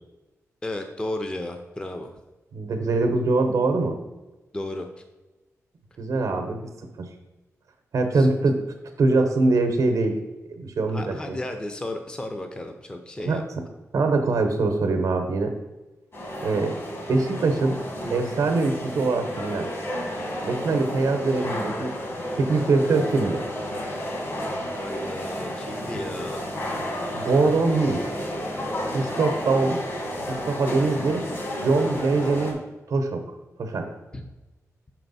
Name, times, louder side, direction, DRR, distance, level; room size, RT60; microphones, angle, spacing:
voice 1, 0.6-2.2 4.5-4.9 8.1-8.3 10.9-13.4 24.7-26.5 34.1-34.2, left 1 dB, 15° left, 6 dB, 0.5 m, -33 dB
voice 2, 2.5-4.0 6.0-6.6 7.0-7.1 7.9-8.6 9.0-10.2 10.5-11.4 13.2-13.4 13.9-15.5 16.4-16.8 17.1-17.8 18.1-19.7 20.4-22.0 22.4-23.4 27.1-28.0 28.9-29.8 30.3-31.3 31.6-32.6 32.9-33.2 33.6-33.9, right 3 dB, 80° right, 5 dB, 0.7 m, -23 dB
sound 1, 16.1-32.5, equal, 50° left, 1.3 m, -32 dB
6.1 x 4.5 x 4.0 m, 1.1 s
wide cardioid pair, 135°, 6 cm